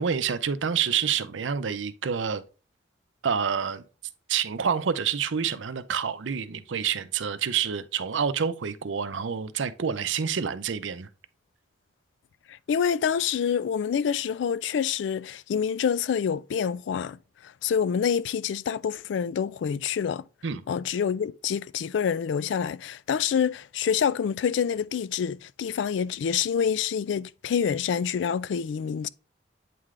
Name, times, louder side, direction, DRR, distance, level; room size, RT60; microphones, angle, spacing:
voice 1, 0.0-2.4 3.2-3.8 4.3-11.1 20.4-20.6, right 7 dB, 85° right, 0.6 m, -28 dB
voice 2, 12.7-17.2 17.6-20.2 20.7-29.1, left 7 dB, 70° left, 0.3 m, -27 dB
8.4 x 3.7 x 3.2 m
head